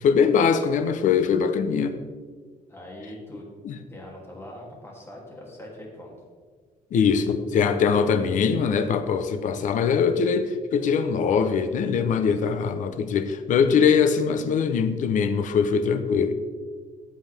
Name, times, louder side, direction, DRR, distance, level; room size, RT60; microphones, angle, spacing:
voice 1, 0.0-2.0 3.6-3.8 6.9-16.3, left 6 dB, 60° left, 0.8 m, -22 dB
voice 2, 2.7-3.4 3.9-6.1, left 1 dB, 15° left, 2.9 m, -42 dB
14.5 x 7.8 x 3.5 m
cardioid pair, 145°, 15 cm